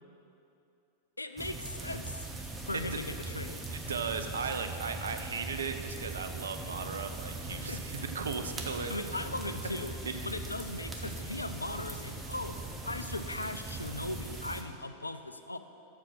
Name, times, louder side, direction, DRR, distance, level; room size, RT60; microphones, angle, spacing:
voice 1, 1.2-2.3 2.7-3.6 7.5-7.8 8.9-10.0 10.3-15.6, left 2 dB, 80° left, 9 dB, 0.4 m, -38 dB
sound 1, 1.4-14.6, right 2 dB, 15° right, 0.9 m, -40 dB
voice 2, 3.7-9.0 10.0-10.2, right 5 dB, 70° right, 7 dB, 0.5 m, -36 dB
7.4 x 6.0 x 6.1 m, 2.8 s
figure-of-eight pair, 90°, 0 cm